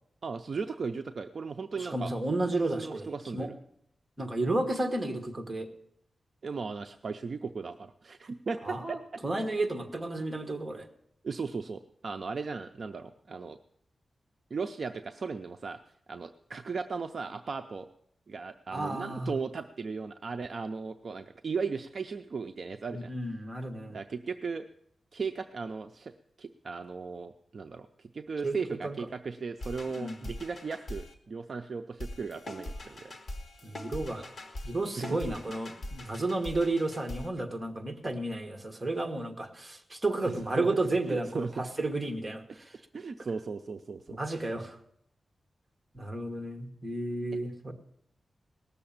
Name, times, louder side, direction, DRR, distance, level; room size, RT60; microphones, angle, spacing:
voice 1, 0.2-2.1 2.8-3.5 6.4-9.0 11.2-13.6 14.5-15.8 16.1-17.9 18.3-23.1 23.9-24.7 25.1-26.1 26.4-27.9 28.1-33.1 35.0-35.4 40.6-40.7 41.1-41.5 42.9-44.4, right 5 dB, 50° right, 6 dB, 0.5 m, -36 dB
voice 2, 1.8-3.5 4.2-5.7 8.6-10.9 18.7-19.3 22.9-24.0 28.4-28.6 28.8-29.0 29.9-30.2 33.6-34.3 34.6-42.7 44.1-44.8 45.9-47.7, right 2 dB, 20° right, 4 dB, 1.6 m, -32 dB
sound 1, 29.6-31.1 32.0-37.3, left 1 dB, 45° left, 1.6 m, -42 dB
18.0 x 6.9 x 8.7 m, 0.71 s
wide cardioid pair, 155°, 0 cm